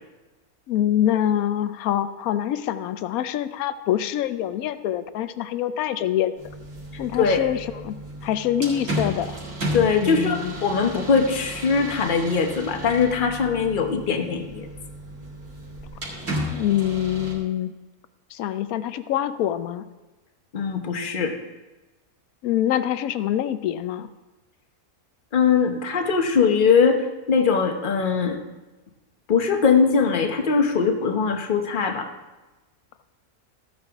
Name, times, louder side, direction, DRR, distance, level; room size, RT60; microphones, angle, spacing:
voice 1, 0.7-6.3 7.0-9.4 10.0-10.6 16.5-17.7 18.3-19.8 22.4-24.1, left 11 dB, 75° left, 12 dB, 1.0 m, -25 dB
sound 1, 6.4-17.3, equal, 55° right, 2.5 m, -34 dB
voice 2, 9.7-14.7 20.5-21.3 25.3-28.4 29.3-32.1, left 5 dB, 40° left, 5 dB, 0.9 m, -21 dB
14.0 x 8.9 x 3.5 m, 1.1 s
omnidirectional pair, 1.6 m